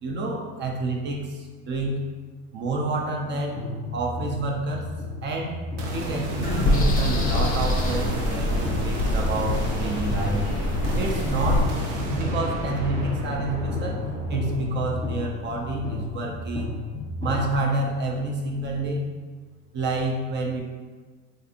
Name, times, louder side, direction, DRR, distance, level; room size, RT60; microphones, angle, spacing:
voice 1, 0.0-2.0 2.5-3.6 3.9-4.9 5.2-5.6 5.9-10.5 11.0-11.7 12.1-14.0 14.3-16.7 17.2-19.1 19.7-20.6, right 2 dB, 35° right, 0 dB, 0.5 m, -28 dB
sound 1, 3.6-17.6, left 3 dB, 10° left, 0.9 m, -32 dB
sound 2, 5.8-17.1, right 1 dB, 70° right, 0.8 m, -33 dB
sound 3, 6.4-11.6, left 1 dB, 25° left, 0.4 m, -25 dB
3.2 x 2.5 x 2.8 m, 1.4 s
supercardioid pair, 110°, 34 cm